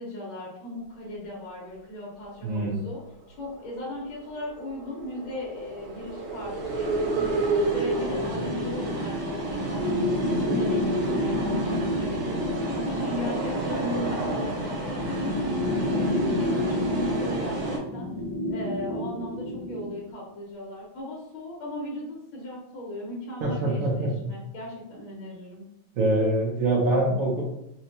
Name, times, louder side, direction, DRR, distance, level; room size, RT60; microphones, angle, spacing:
voice 1, 0.0-3.0 3.4-18.1 18.5-25.6, left 1 dB, 75° left, -4 dB, 1.7 m, -37 dB
voice 2, 2.4-2.7 23.4-24.1 26.0-27.4, right 2 dB, 85° right, -3 dB, 0.7 m, -24 dB
sound 1, 3.7-17.8, right 2 dB, 60° right, 1.0 m, -30 dB
sound 2, 7.6-19.9, left 1 dB, 45° right, 0.4 m, -30 dB
4.3 x 2.2 x 2.7 m, 0.88 s
omnidirectional pair, 2.3 m